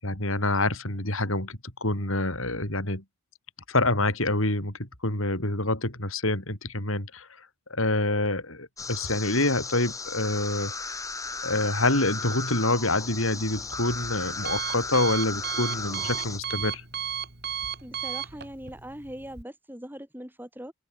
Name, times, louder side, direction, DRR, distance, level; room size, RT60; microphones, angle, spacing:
voice 1, 0.0-3.0 3.7-11.0 11.4-16.8, left 2 dB, 75° left, 6.7 m, -27 dB
sound 1, 8.8-16.4, left 4 dB, 15° left, 3.8 m, -35 dB
Alarm, 13.0-19.4, right 8 dB, 50° right, 3.0 m, -35 dB
voice 2, 17.8-20.7, equal, 10° right, 5.3 m, -41 dB
head